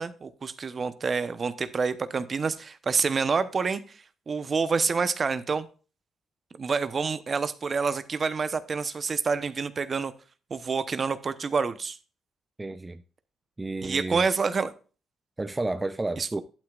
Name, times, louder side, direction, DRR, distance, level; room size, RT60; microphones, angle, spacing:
voice 1, 0.0-4.0 4.3-5.7 6.6-10.1 10.5-12.0 13.8-14.7 16.2-16.3, right 5 dB, 40° right, 1.0 m, -27 dB
voice 2, 12.6-13.0 13.6-14.2 15.4-16.4, right 2 dB, 20° right, 0.6 m, -31 dB
11.5 x 8.7 x 2.5 m
cardioid pair, 90°, 0 cm